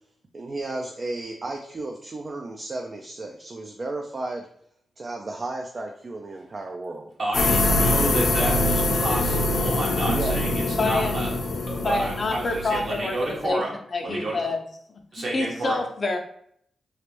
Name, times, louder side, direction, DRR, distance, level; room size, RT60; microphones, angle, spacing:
voice 1, 0.3-4.5 5.0-7.1 10.1-10.3, right 2 dB, 45° right, 2 dB, 0.4 m, -33 dB
voice 2, 7.2-11.3 11.7-13.7 14.0-14.4 15.1-15.8, right 1 dB, 65° right, -4 dB, 1.3 m, -30 dB
sound 1, 7.3-13.5, left 2 dB, 80° left, 0.7 m, -24 dB
voice 3, 10.5-11.4 11.8-13.2 13.4-13.6 13.9-14.6 15.2-16.2, left 2 dB, 45° left, 4 dB, 0.5 m, -27 dB
3.2 x 2.5 x 3.0 m, 0.67 s
cardioid pair, 75°, 0 cm